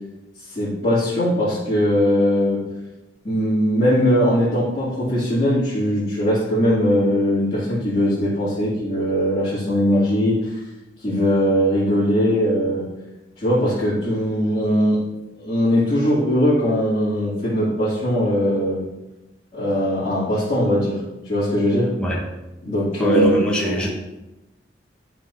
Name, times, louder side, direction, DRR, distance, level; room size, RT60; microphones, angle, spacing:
voice 1, 0.5-2.6 3.2-10.6 11.0-12.8 13.4-15.0 15.4-18.8 19.5-21.9 22.6-23.8, equal, 35° left, -12 dB, 2.8 m, -20 dB
voice 2, 23.0-23.9, equal, 5° left, -4 dB, 1.1 m, -22 dB
12.5 x 4.9 x 2.8 m, 1.0 s
head